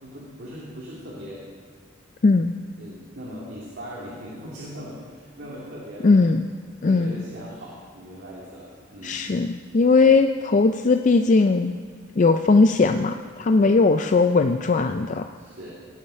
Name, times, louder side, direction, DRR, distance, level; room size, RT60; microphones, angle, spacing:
voice 1, 0.0-1.5 2.8-6.2 6.8-9.2 10.0-10.1 13.6-13.8 15.3-15.7, equal, 55° right, -6 dB, 2.5 m, -39 dB
voice 2, 2.2-2.5 6.0-6.4 6.8-7.2 9.0-11.7 12.2-15.3, left 3 dB, 40° left, 7 dB, 0.4 m, -19 dB
18.0 x 7.4 x 5.6 m, 2.1 s
head